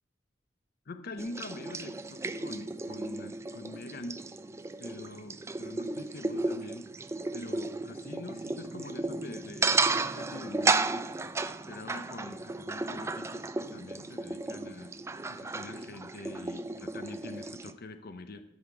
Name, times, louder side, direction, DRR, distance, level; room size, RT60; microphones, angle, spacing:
voice 1, 0.9-4.2 4.8-6.8 7.3-11.1 11.7-14.9 15.3-18.4, left 2 dB, 55° left, 9 dB, 0.7 m, -44 dB
sound 1, 1.2-17.7, right 3 dB, 15° right, 0.4 m, -34 dB
13.0 x 5.7 x 4.6 m, 0.80 s
head